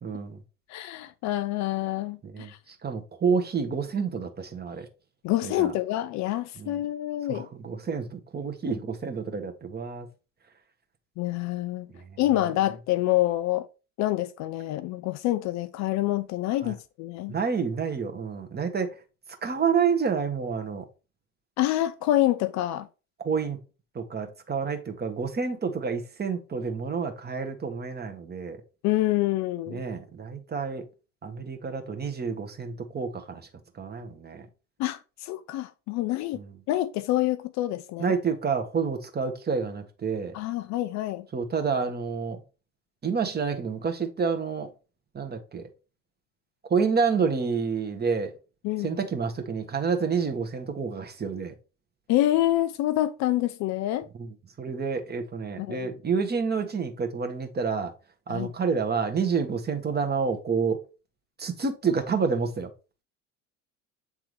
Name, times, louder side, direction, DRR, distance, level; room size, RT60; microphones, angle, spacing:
voice 1, 0.0-0.4 2.2-4.9 5.4-5.7 6.6-6.8 7.3-10.1 11.9-12.0 16.6-16.7 17.3-19.0 19.4-20.8 23.2-23.6 23.9-28.6 29.7-30.8 31.2-33.5 33.7-34.4 36.3-36.5 38.0-40.3 41.3-42.4 43.0-44.7 45.1-45.6 46.7-48.3 48.8-51.5 54.2-54.3 54.6-57.9 58.3-60.8 61.4-62.7, right 5 dB, 25° right, 1.3 m, -29 dB
voice 2, 0.7-2.6 5.2-7.5 11.2-11.9 12.2-13.7 14.0-17.4 21.6-22.9 28.8-29.8 34.8-36.4 36.7-38.1 40.3-41.3 48.6-48.9 52.1-54.1 55.6-55.9 58.3-58.5, left 15 dB, 50° left, 0.5 m, -27 dB
8.0 x 3.6 x 3.3 m
hypercardioid pair, 65°, 37 cm